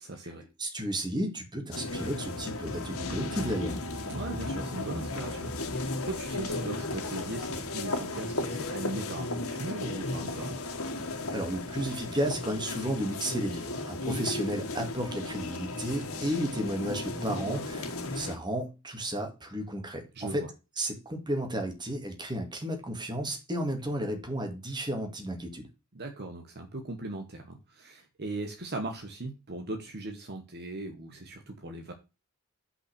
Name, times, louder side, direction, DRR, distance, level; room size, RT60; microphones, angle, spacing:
voice 1, 0.0-0.5 4.1-10.6 20.1-20.5 25.9-31.9, right 2 dB, 50° right, 1.2 m, -39 dB
voice 2, 0.6-3.8 11.3-20.4 20.8-25.7, right 1 dB, 20° right, 2.1 m, -33 dB
sound 1, 1.7-18.4, left 2 dB, 80° left, 1.7 m, -35 dB
5.8 x 5.6 x 6.6 m
head